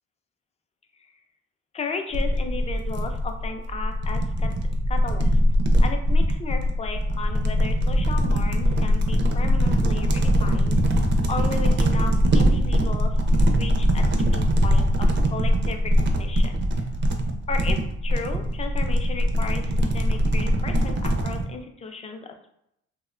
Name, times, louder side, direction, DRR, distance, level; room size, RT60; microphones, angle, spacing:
voice 1, 1.7-4.5 4.9-5.4 5.8-13.2 13.5-14.0 14.3-16.8 17.5-22.5, left 4 dB, 25° left, 5 dB, 0.3 m, -35 dB
sound 1, 2.1-21.5, equal, 40° right, 0.4 m, -22 dB
2.7 x 2.1 x 2.4 m, 0.77 s
cardioid pair, 90°, 30 cm